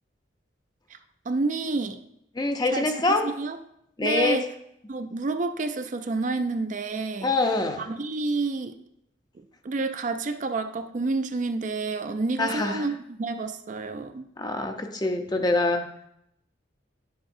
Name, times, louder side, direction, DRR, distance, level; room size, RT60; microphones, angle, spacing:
voice 1, 1.3-2.0 2.7-2.9 3.2-3.6 4.0-4.5 4.9-7.3 7.8-8.7 9.4-14.3, right 3 dB, 40° right, 8 dB, 0.4 m, -29 dB
voice 2, 2.4-3.3 4.0-4.4 7.2-7.8 12.4-12.8 14.4-15.9, left 2 dB, 20° left, 5 dB, 0.6 m, -25 dB
9.7 x 7.3 x 2.6 m, 0.79 s
head